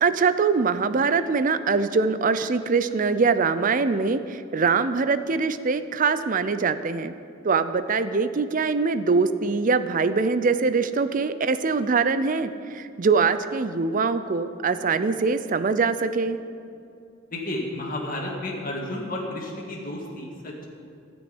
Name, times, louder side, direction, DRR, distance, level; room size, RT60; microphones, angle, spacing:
voice 1, 0.0-7.1 7.4-16.4, right 4 dB, 45° right, 12 dB, 0.5 m, -23 dB
voice 2, 17.3-20.7, left 1 dB, 45° left, -2 dB, 2.0 m, -32 dB
13.0 x 6.3 x 9.9 m, 2.5 s
head